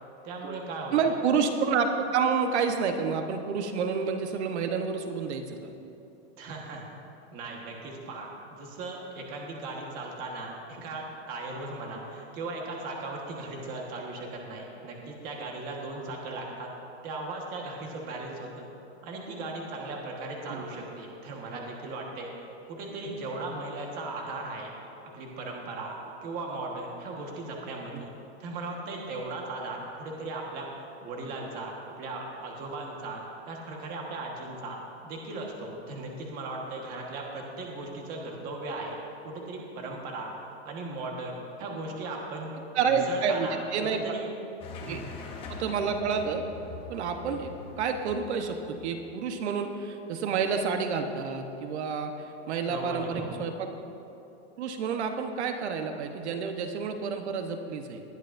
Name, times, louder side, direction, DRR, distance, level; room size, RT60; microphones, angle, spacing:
voice 1, 0.2-1.2 6.4-6.8 7.3-16.7 17.0-18.7 19.0-22.3 22.7-24.7 25.1-26.0 26.2-28.1 28.4-30.7 31.0-33.2 33.5-34.8 35.0-39.0 39.2-40.3 40.6-42.5 42.8-43.6 43.8-44.3 44.8-45.1 52.7-53.4, right 2 dB, 25° right, 0 dB, 1.4 m, -37 dB
voice 2, 0.9-5.7 20.5-20.6 27.9-28.0 42.7-44.0 44.8-45.0 45.5-46.5 46.9-47.5 47.8-53.7 54.6-58.0, right 6 dB, 80° right, 5 dB, 1.1 m, -29 dB
sound 1, 44.6-49.3, left 4 dB, 15° left, 0.8 m, -43 dB
19.5 x 11.0 x 2.6 m, 2.8 s
supercardioid pair, 175°, 33 cm